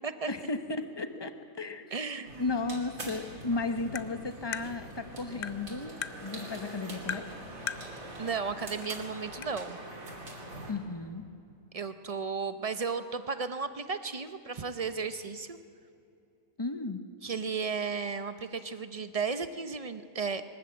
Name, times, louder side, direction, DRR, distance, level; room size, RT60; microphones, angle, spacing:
voice 1, 0.3-1.9 2.4-5.9 6.2-7.3 10.7-11.2 16.6-17.1, left 3 dB, 20° left, 8 dB, 0.8 m, -34 dB
voice 2, 1.9-2.4 8.2-9.8 11.7-15.6 17.2-20.4, right 5 dB, 40° right, 11 dB, 0.5 m, -34 dB
sound 1, 2.2-10.7, right 1 dB, 65° right, 3.3 m, -44 dB
Tap, 3.9-4.1 4.5-4.7 5.4-5.6 6.0-6.2 7.1-7.3 7.7-7.9 8.8-8.9 9.4-9.5, left 9 dB, 60° left, 0.5 m, -36 dB
22.5 x 13.0 x 8.8 m, 2.5 s
omnidirectional pair, 1.5 m